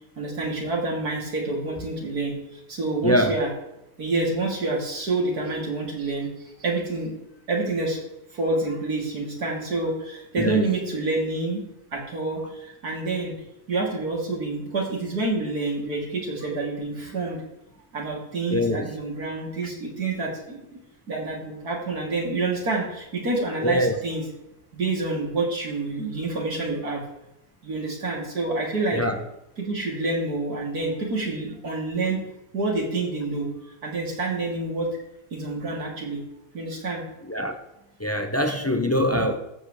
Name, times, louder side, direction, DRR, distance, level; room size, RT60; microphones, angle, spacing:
voice 1, 0.2-3.5 4.0-7.1 7.5-8.0 8.3-11.6 11.9-13.4 13.7-17.4 17.9-20.8 21.1-24.2 24.7-27.0 27.6-29.0 29.6-32.2 32.5-35.0 35.3-36.2 36.5-37.0, right 3 dB, 80° right, -2 dB, 3.4 m, -28 dB
voice 2, 3.0-3.4 10.4-10.6 18.5-18.9 23.6-23.9 28.9-29.2 37.2-37.6 38.0-39.4, equal, 15° left, 6 dB, 0.5 m, -23 dB
14.5 x 8.0 x 3.3 m, 0.88 s
omnidirectional pair, 1.6 m